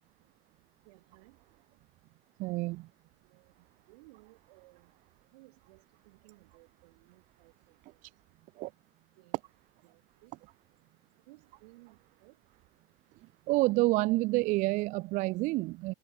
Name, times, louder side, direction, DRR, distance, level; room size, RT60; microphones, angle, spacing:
voice 1, 0.9-1.4 3.2-3.5 3.9-4.9 5.3-7.8 9.2-9.4 9.8-10.3 11.3-12.4, right 23 dB, 70° right, 5.8 m, -59 dB
voice 2, 2.4-2.8 8.6-8.7 13.5-15.9, right 21 dB, 40° right, 0.5 m, -28 dB
supercardioid pair, 155°, 20 cm